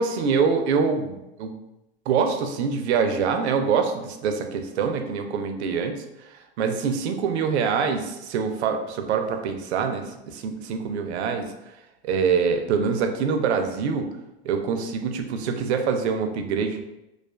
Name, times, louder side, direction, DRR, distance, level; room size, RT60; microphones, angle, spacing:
voice 1, 0.0-1.5 2.1-6.0 6.6-11.5 12.0-14.1 14.4-16.8, right 5 dB, 90° right, 6 dB, 0.5 m, -25 dB
2.4 x 2.3 x 2.2 m, 0.93 s
supercardioid pair, 135°, 32 cm